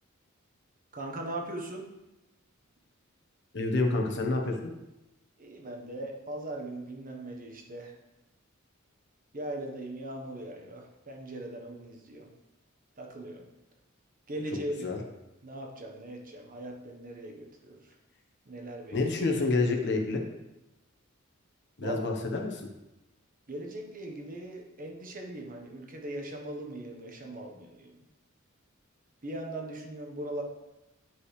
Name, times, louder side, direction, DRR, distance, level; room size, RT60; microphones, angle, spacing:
voice 1, 0.9-1.8 5.4-8.0 9.3-12.3 13.0-13.5 14.3-14.9 15.4-18.0 18.5-19.0 21.8-22.0 23.5-28.0 29.2-30.4, right 1 dB, 40° right, 2 dB, 1.2 m, -39 dB
voice 2, 3.5-4.6 14.8-15.0 18.9-20.2 21.8-22.7, left 3 dB, 55° left, 2 dB, 1.1 m, -28 dB
10.5 x 5.5 x 3.3 m, 0.98 s
head